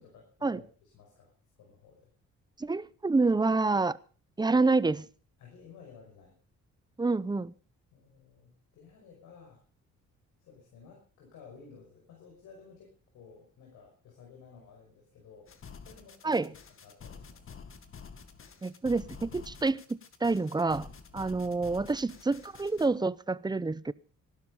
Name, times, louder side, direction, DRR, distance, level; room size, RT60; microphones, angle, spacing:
voice 1, 0.0-1.3 1.6-2.1 5.4-6.3 7.9-9.6 10.4-16.5 16.8-17.6, left 5 dB, 85° left, 0 dB, 5.7 m, -54 dB
voice 2, 2.6-4.0 4.4-5.1 7.0-7.5 16.2-16.5 18.6-23.9, right 3 dB, 15° right, 19 dB, 0.7 m, -28 dB
sound 1, 15.5-22.9, left 6 dB, 45° left, 2.0 m, -49 dB
17.5 x 12.0 x 5.5 m, 0.40 s
cardioid pair, 90°, 30 cm